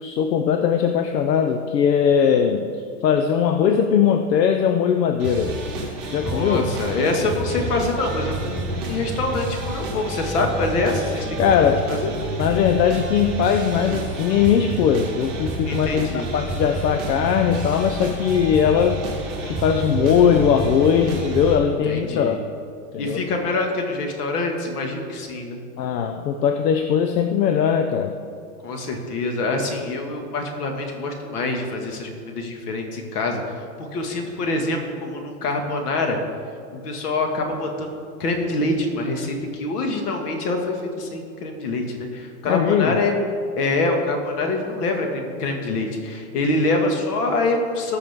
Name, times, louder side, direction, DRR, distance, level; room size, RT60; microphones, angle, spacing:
voice 1, 0.0-2.7 3.0-5.6 6.1-6.7 11.4-11.9 12.4-19.0 19.4-22.4 22.9-23.2 25.8-28.2 42.4-43.0, left 7 dB, 85° left, 6 dB, 0.9 m, -20 dB
sound 1, 5.2-21.5, right 2 dB, 5° right, 0.4 m, -29 dB
voice 2, 6.2-11.4 11.9-12.1 15.7-16.3 21.8-22.4 23.0-25.6 28.6-36.2 36.7-43.3 43.6-48.0, left 2 dB, 70° left, 3 dB, 2.1 m, -25 dB
18.5 x 6.4 x 3.6 m, 2.3 s
supercardioid pair, 165°, 48 cm